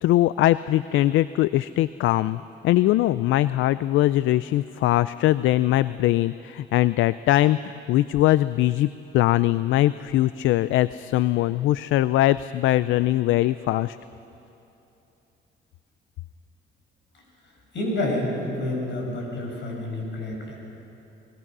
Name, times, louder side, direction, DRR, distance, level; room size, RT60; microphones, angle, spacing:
voice 1, 0.0-14.0, left 15 dB, 80° left, 16 dB, 0.4 m, -21 dB
voice 2, 17.7-20.5, left 1 dB, 65° left, 0 dB, 6.6 m, -29 dB
25.0 x 19.5 x 6.1 m, 2.9 s
cardioid pair, 90°, 20 cm